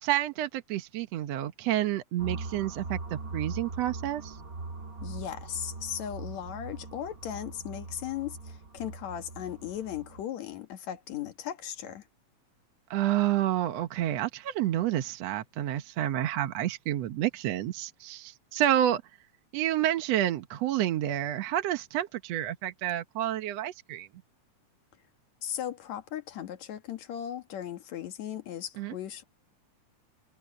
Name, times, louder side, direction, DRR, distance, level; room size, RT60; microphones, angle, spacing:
voice 1, 0.0-4.4 12.9-19.0 19.5-24.1 28.8-29.0, right 12 dB, 70° right, 2.0 m, -29 dB
sound 1, 2.2-10.2, right 3 dB, 35° right, 2.2 m, -41 dB
voice 2, 5.0-12.0 25.4-29.2, left 10 dB, 70° left, 2.8 m, -37 dB
omnidirectional pair, 3.3 m